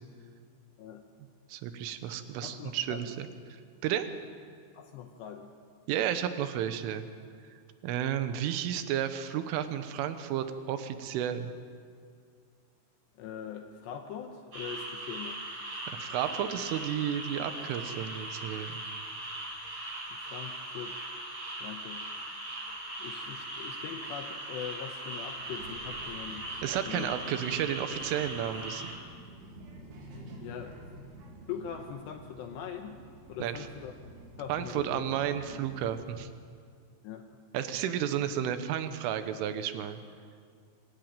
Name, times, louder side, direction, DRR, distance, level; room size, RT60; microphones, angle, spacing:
voice 1, 1.5-4.1 5.9-7.0 7.5-7.6 7.8-11.5 16.0-18.8 26.6-28.9 33.4-33.7 34.5-36.3 37.5-40.0, right 10 dB, 80° right, 10 dB, 3.5 m, -32 dB
voice 2, 2.4-3.0 4.7-5.5 13.2-15.4 20.1-21.0 21.6-22.0 23.0-26.5 26.9-27.1 30.4-30.8 31.5-33.0 33.3-33.9 34.4-35.0 37.0-37.2, left 8 dB, 75° left, 5 dB, 2.7 m, -42 dB
sound 1, 14.5-28.9, right 1 dB, 30° right, 4.8 m, -40 dB
Child speech kid speaking, 25.3-36.1, right 1 dB, 60° right, 4.6 m, -49 dB
26.0 x 14.0 x 9.0 m, 2.1 s
omnidirectional pair, 5.8 m